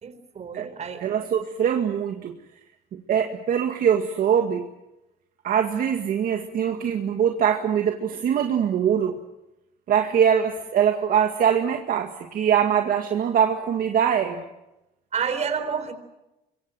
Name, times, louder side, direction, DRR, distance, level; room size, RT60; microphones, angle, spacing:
voice 1, 0.0-1.0 15.1-15.9, right 6 dB, 40° right, 11 dB, 4.0 m, -29 dB
voice 2, 1.0-2.3 2.9-4.7 5.4-9.2 9.9-14.5, right 8 dB, 55° right, 4 dB, 2.0 m, -23 dB
26.0 x 23.5 x 7.7 m, 0.95 s
cardioid pair, 110°, 17 cm